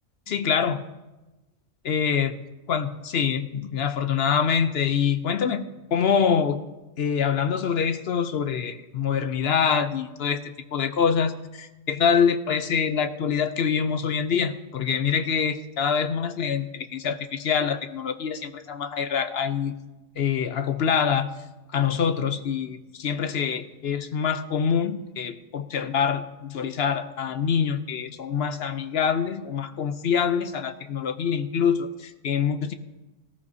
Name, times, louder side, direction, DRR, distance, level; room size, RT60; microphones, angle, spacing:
voice 1, 0.3-0.8 1.8-2.3 2.7-6.6 7.0-19.7 20.2-21.3 21.7-32.7, left 7 dB, 60° left, 10 dB, 0.8 m, -25 dB
18.0 x 13.5 x 2.7 m, 1.1 s
omnidirectional pair, 1.3 m